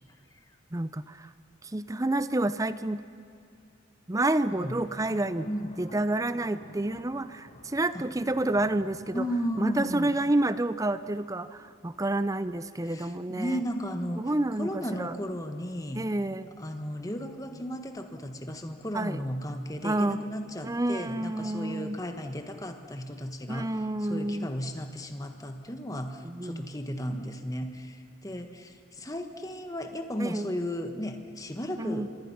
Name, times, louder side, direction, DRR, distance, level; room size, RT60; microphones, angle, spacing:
voice 1, 0.7-1.3 1.6-3.0 4.1-5.5 5.8-9.2 9.6-13.6 14.2-15.2 15.9-16.5 18.9-19.3 19.8-20.2 20.6-22.0 23.5-24.5 26.2-26.7 30.2-30.5 31.8-32.1, right 1 dB, 15° right, 13 dB, 0.5 m, -29 dB
sound 1, 4.5-10.3, left 1 dB, 35° left, 1.9 m, -50 dB
voice 2, 5.4-5.8 7.9-8.1 9.1-10.1 12.8-14.3 14.6-16.0 16.6-23.7 24.0-32.1, equal, 15° left, 6 dB, 1.4 m, -34 dB
26.5 x 23.0 x 5.9 m, 2.4 s
head